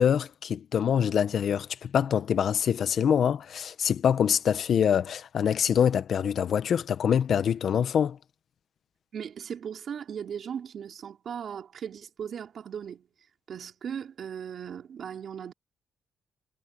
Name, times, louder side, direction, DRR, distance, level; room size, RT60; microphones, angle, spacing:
voice 1, 0.0-8.2, left 8 dB, 60° left, 1.1 m, -25 dB
voice 2, 9.1-13.1 13.5-15.5, right 8 dB, 55° right, 4.8 m, -37 dB
cardioid pair, 90°, 0 cm